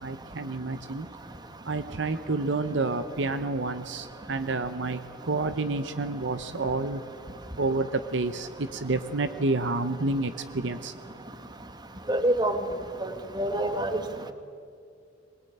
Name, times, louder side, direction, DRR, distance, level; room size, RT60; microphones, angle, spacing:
voice 1, 0.0-1.1 1.6-7.1 7.6-11.0, right 3 dB, 65° right, 0.9 m, -29 dB
voice 2, 12.1-12.6 13.0-14.0, right 1 dB, 20° right, 1.5 m, -26 dB
22.0 x 20.5 x 9.3 m
head